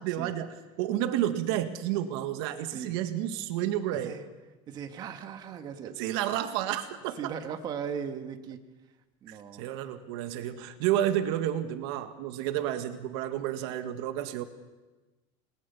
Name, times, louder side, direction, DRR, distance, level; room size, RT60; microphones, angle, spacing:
voice 1, 0.0-4.1 5.8-7.3 9.3-14.4, right 12 dB, 70° right, 8 dB, 1.8 m, -31 dB
voice 2, 4.7-6.0 7.2-8.6 9.2-9.6, right 7 dB, 30° right, 6 dB, 1.8 m, -37 dB
30.0 x 21.5 x 7.1 m, 1.2 s
cardioid pair, 165°, 14 cm